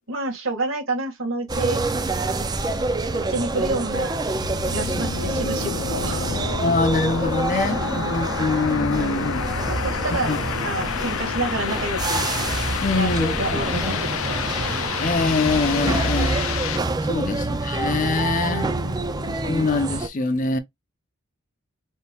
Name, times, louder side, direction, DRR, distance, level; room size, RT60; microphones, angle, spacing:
voice 1, 0.1-1.8 3.1-4.2 4.7-6.3 6.6-6.7 7.7-8.2 8.7-12.3 12.9-13.1 13.4-14.2 15.5-15.6 17.1-17.6 18.5-19.4, right 2 dB, 75° right, 2.0 m, -29 dB
sound 1, 1.5-20.1, right 2 dB, 20° right, 0.5 m, -27 dB
sound 2, 4.3-16.8, left 7 dB, 85° left, 0.5 m, -29 dB
voice 2, 6.6-9.5 10.2-10.4 12.8-13.8 15.0-16.5 17.1-18.7 19.4-20.6, left 3 dB, 40° left, 0.7 m, -24 dB
4.1 x 3.7 x 2.4 m
head